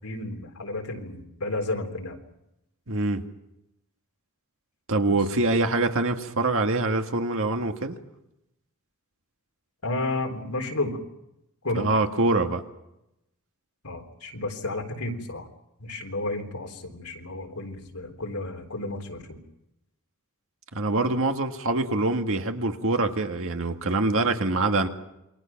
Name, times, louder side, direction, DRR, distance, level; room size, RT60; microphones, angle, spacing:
voice 1, 0.0-2.2 9.8-11.0 11.6-11.9 13.8-15.5 15.8-19.4, left 2 dB, 80° left, 3 dB, 3.8 m, -32 dB
voice 2, 2.9-3.2 4.9-8.0 11.8-12.6 20.7-24.9, right 2 dB, 65° right, 5 dB, 1.9 m, -24 dB
28.0 x 23.0 x 6.0 m, 0.87 s
head